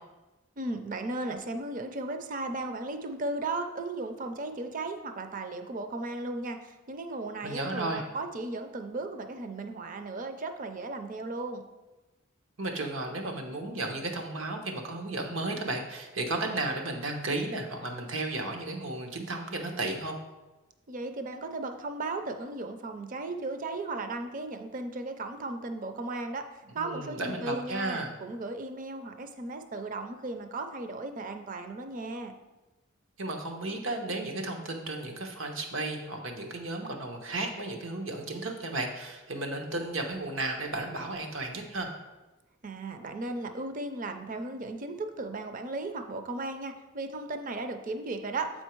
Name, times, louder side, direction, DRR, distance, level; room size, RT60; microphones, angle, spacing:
voice 1, 0.6-11.6 20.9-26.4 26.7-32.3 42.6-48.6, right 2 dB, 45° right, 7 dB, 0.5 m, -36 dB
voice 2, 7.4-8.1 12.6-20.2 26.6-28.1 33.2-41.9, right 2 dB, 90° right, 3 dB, 1.0 m, -34 dB
7.8 x 4.5 x 4.5 m, 1.1 s
head